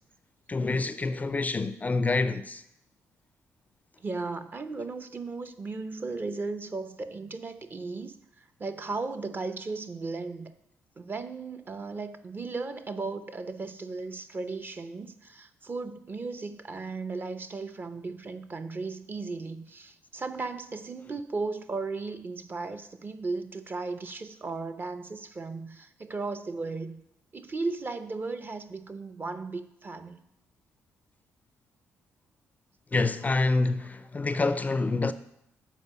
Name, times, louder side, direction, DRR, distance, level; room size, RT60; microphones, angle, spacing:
voice 1, 0.5-2.6 32.9-35.1, left 3 dB, 25° left, 0.4 m, -27 dB
voice 2, 4.0-10.5 11.0-27.0 27.3-30.2, right 3 dB, 35° right, 0.6 m, -36 dB
7.1 x 4.4 x 5.5 m
supercardioid pair, 65°, 6 cm